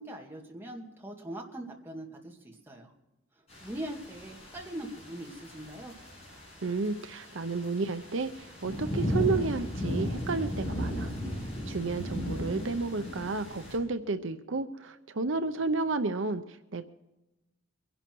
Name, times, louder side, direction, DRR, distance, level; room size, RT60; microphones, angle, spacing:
voice 1, 0.0-2.9 3.6-5.9, right 1 dB, 10° right, -1 dB, 2.2 m, -41 dB
sound 1, 3.5-13.8, equal, 30° left, 7.7 m, -36 dB
voice 2, 6.6-11.1 11.7-16.9, right 3 dB, 70° right, 9 dB, 0.7 m, -32 dB
23.5 x 11.5 x 4.6 m, 1.0 s
head